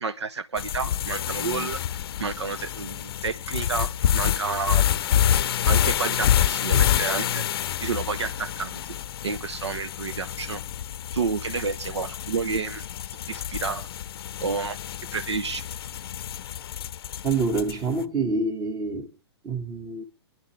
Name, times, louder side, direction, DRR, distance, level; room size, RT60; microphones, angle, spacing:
voice 1, 0.0-1.8 2.2-4.9 5.7-10.6 11.1-12.8 13.3-13.9 14.4-14.8 15.1-15.7, right 5 dB, 80° right, 0.8 m, -30 dB
sound 1, 0.6-17.9, left 10 dB, 60° left, 0.6 m, -27 dB
voice 2, 17.2-19.1 19.4-20.0, right 3 dB, 25° right, 1.7 m, -26 dB
27.0 x 10.5 x 3.3 m
figure-of-eight pair, 115°, 14 cm